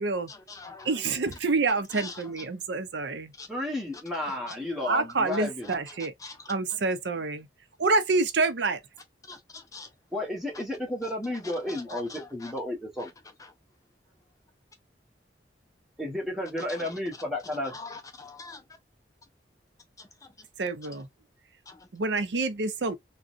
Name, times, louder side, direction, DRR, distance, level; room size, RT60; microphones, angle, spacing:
voice 1, 0.3-1.0 1.9-2.4 3.4-3.5 4.3-4.5 5.6-5.7 6.2-6.5 9.3-9.9 11.7-12.5 13.0-13.1 16.8-16.9 17.6-18.6 20.0-20.1 21.7-21.9, left 3 dB, 20° left, 0.4 m, -44 dB
voice 2, 0.8-3.3 4.8-6.1 6.5-7.5 7.8-8.8 20.6-21.1 21.9-22.9, right 3 dB, 75° right, 0.6 m, -27 dB
voice 3, 3.5-5.8 10.1-13.1 16.0-17.7, left 1 dB, ahead, 1.2 m, -32 dB
3.7 x 2.2 x 2.5 m
head